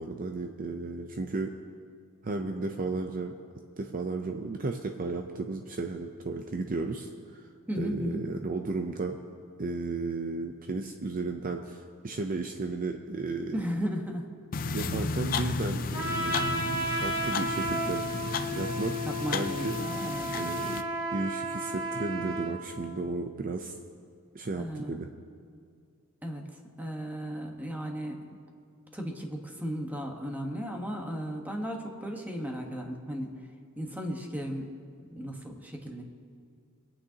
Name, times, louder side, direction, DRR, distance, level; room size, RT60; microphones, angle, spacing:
voice 1, 0.0-1.5 2.2-3.3 3.8-7.5 7.7-9.2 9.6-13.6 14.7-18.0 18.5-19.0 19.3-19.8 20.3-20.8 21.1-23.8 24.3-25.1, right 3 dB, 40° right, 4 dB, 0.6 m, -34 dB
voice 2, 7.7-8.2 13.5-14.3 14.8-15.0 19.0-20.3 24.6-25.0 26.2-26.4 26.8-28.2 28.9-33.3 33.8-34.7 35.1-36.0, equal, 10° right, 2 dB, 1.2 m, -35 dB
sound 1, 14.5-20.8, left 4 dB, 40° left, 0.4 m, -34 dB
Trumpet, 15.9-22.6, right 1 dB, 80° right, 1.7 m, -33 dB
25.5 x 8.9 x 2.8 m, 2.3 s
head